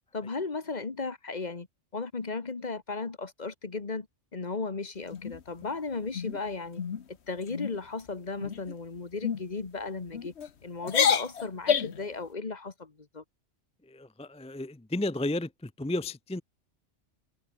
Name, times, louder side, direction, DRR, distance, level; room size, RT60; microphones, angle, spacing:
voice 1, 0.1-1.7 1.9-4.1 4.3-6.8 7.1-10.3 10.6-13.2, left 4 dB, 35° left, 1.5 m, -35 dB
sound 1, 5.1-5.7 6.1-6.4 6.8-7.0 7.4-7.8 8.4-8.7 9.2-9.4 10.1-10.5 10.8-12.1, left 7 dB, 65° left, 1.4 m, -28 dB
voice 2, 13.8-16.4, left 1 dB, 10° left, 0.4 m, -33 dB
omnidirectional pair, 1.2 m